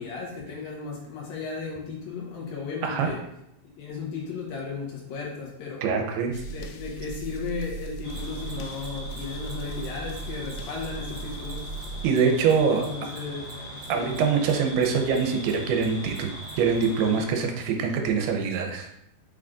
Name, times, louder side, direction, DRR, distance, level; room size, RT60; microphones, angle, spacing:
voice 1, 0.0-3.3 3.6-5.9 6.5-11.7 12.7-13.5 13.8-14.2, left 5 dB, 70° left, -3 dB, 2.7 m, -35 dB
voice 2, 2.8-3.1 5.8-6.3 12.0-12.9 13.9-18.9, right 6 dB, 90° right, 3 dB, 2.7 m, -24 dB
sound 1, 6.3-12.1, right 4 dB, 90° left, 2.7 m, -37 dB
sound 2, 8.0-17.2, equal, 45° left, 3.4 m, -40 dB
Mechanisms, 8.1-14.9 15.1-16.9, right 6 dB, 65° right, 2.0 m, -49 dB
6.3 x 6.0 x 2.5 m, 0.79 s
omnidirectional pair, 4.7 m